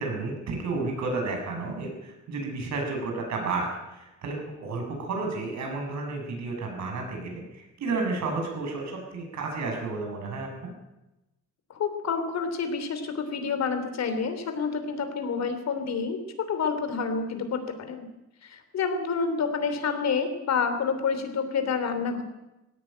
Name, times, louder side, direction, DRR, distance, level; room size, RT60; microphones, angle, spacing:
voice 1, 0.0-10.7, right 3 dB, 70° right, 2 dB, 6.9 m, -32 dB
voice 2, 11.7-16.2 16.5-18.1 18.4-22.2, left 5 dB, 65° left, 8 dB, 3.3 m, -28 dB
20.0 x 17.0 x 8.8 m, 0.98 s
wide cardioid pair, 180°, 29 cm